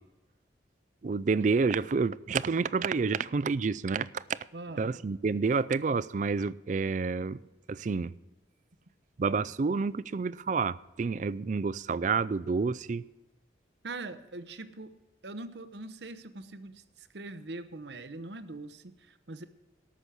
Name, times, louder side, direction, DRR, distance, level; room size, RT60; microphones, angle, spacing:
voice 1, 1.0-4.4 4.8-7.4 7.7-8.1 9.2-13.0, right 4 dB, 40° right, 0.4 m, -29 dB
voice 2, 4.5-4.9 13.8-14.9 15.2-19.4, right 2 dB, 65° right, 0.9 m, -42 dB
13.5 x 6.2 x 8.3 m
head